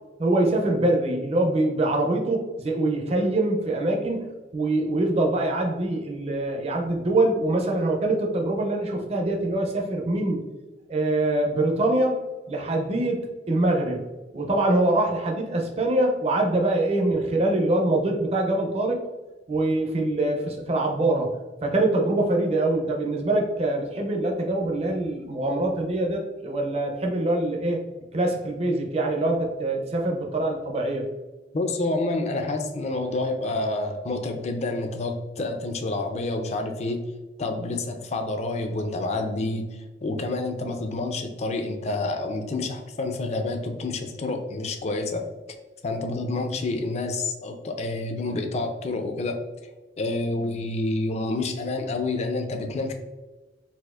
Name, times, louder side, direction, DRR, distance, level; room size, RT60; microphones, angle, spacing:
voice 1, 0.2-4.3 4.5-10.4 10.9-12.2 12.5-14.0 14.3-19.0 19.5-21.3 21.6-27.8 28.1-31.1, right 2 dB, 35° right, 1 dB, 0.5 m, -24 dB
voice 2, 31.5-37.0 37.4-45.2 45.8-49.4 50.0-52.9, left 2 dB, 35° left, 5 dB, 0.4 m, -28 dB
4.1 x 2.4 x 2.4 m, 1.2 s
head